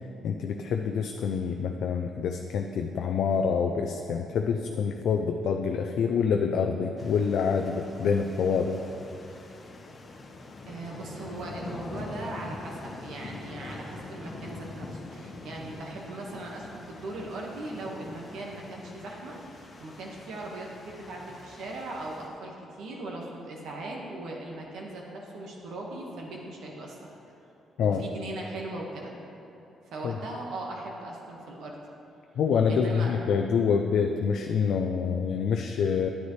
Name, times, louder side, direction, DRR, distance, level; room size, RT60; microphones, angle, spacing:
voice 1, 0.2-8.8 27.8-28.0 30.0-30.2 32.4-36.1, left 6 dB, 70° left, 4 dB, 0.4 m, -26 dB
sound 1, 7.0-22.3, left 2 dB, 40° left, 0.9 m, -44 dB
voice 2, 10.7-27.2 27.8-29.1 29.8-31.8 32.7-33.1, right 2 dB, 80° right, -1 dB, 1.5 m, -39 dB
9.7 x 9.3 x 3.2 m, 2.8 s
cardioid pair, 90°, 0 cm